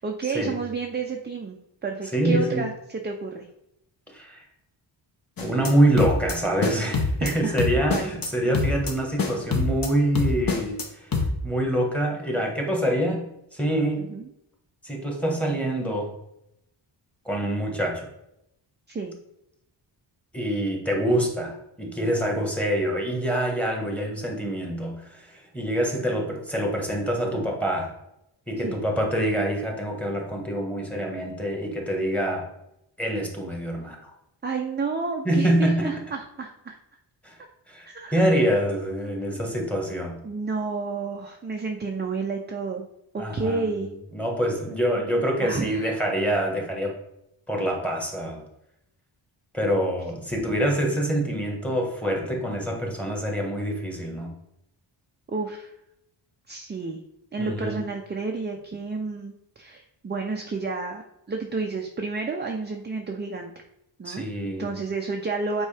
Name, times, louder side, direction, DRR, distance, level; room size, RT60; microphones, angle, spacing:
voice 1, 0.0-1.6 1.8-3.5 7.2-7.6 7.9-8.1 14.0-14.3 18.9-19.2 28.6-28.9 34.4-36.8 37.9-39.5 40.2-42.9 43.1-43.9 45.4-45.9 55.3-55.7 56.5-57.0 57.3-61.0 61.3-63.5 64.0-65.7, right 4 dB, 25° right, 2 dB, 0.4 m, -31 dB
voice 2, 2.1-2.6 4.1-4.4 5.4-13.2 13.5-14.0 14.8-16.1 17.2-18.1 20.3-27.9 28.5-32.5 33.0-34.1 35.2-35.9 37.2-37.3 37.7-40.2 43.2-43.7 44.1-46.9 47.5-48.4 49.5-54.3 57.4-57.8 64.0-64.7, right 1 dB, 5° left, 0 dB, 1.3 m, -25 dB
sound 1, 5.4-5.7 6.0-6.3 6.6-7.3 7.6-8.3 8.5-8.9 9.2-9.9 10.1-10.8 11.1-11.3, left 4 dB, 45° left, 1.0 m, -25 dB
8.2 x 4.5 x 3.3 m, 0.81 s
wide cardioid pair, 155°, 48 cm